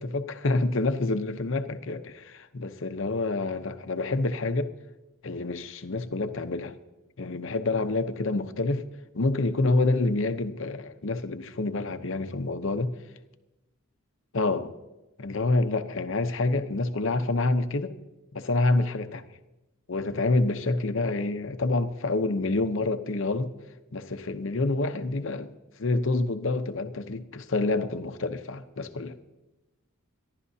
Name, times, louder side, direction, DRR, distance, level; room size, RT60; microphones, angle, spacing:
voice 1, 0.0-4.7 5.2-6.8 7.2-8.8 9.1-12.9 14.3-14.7 15.2-17.9 18.3-19.2 19.9-23.5 23.9-25.5 25.8-29.2, left 2 dB, 65° left, 0.8 m, -27 dB
25.5 x 11.5 x 2.8 m
head